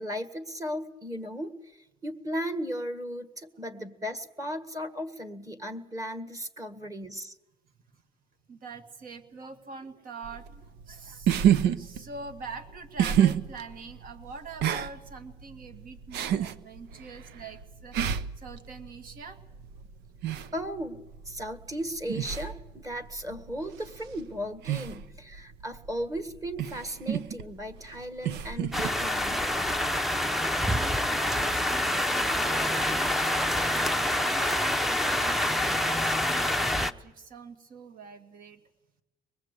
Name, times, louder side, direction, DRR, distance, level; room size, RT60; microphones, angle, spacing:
voice 1, 0.0-7.3 20.5-21.0 21.2-29.4 34.4-34.6, equal, 20° right, 11 dB, 1.7 m, -36 dB
voice 2, 8.5-19.4 30.7-38.6, right 4 dB, 55° right, 7 dB, 2.2 m, -44 dB
sound 1, 10.2-29.9, right 10 dB, 85° right, 0.8 m, -31 dB
sound 2, 28.7-36.9, left 1 dB, ahead, 0.7 m, -26 dB
24.0 x 20.5 x 8.3 m, 1.0 s
cardioid pair, 110°, 17 cm